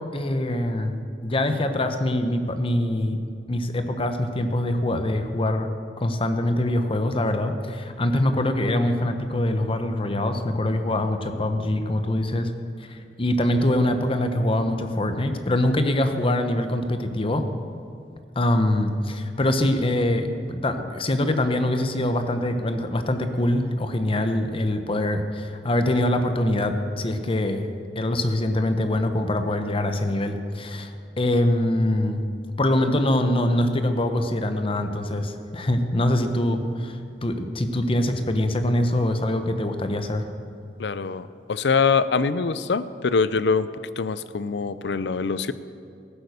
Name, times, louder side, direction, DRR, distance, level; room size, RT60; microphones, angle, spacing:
voice 1, 0.1-3.2 3.5-5.7 6.0-12.5 12.9-17.5 18.4-27.7 28.0-30.9 31.2-32.3 32.6-40.3, left 1 dB, 30° left, 7 dB, 0.9 m, -24 dB
voice 2, 40.8-43.7 44.0-45.5, left 5 dB, 70° left, 15 dB, 0.5 m, -24 dB
15.0 x 9.4 x 6.7 m, 2.4 s
head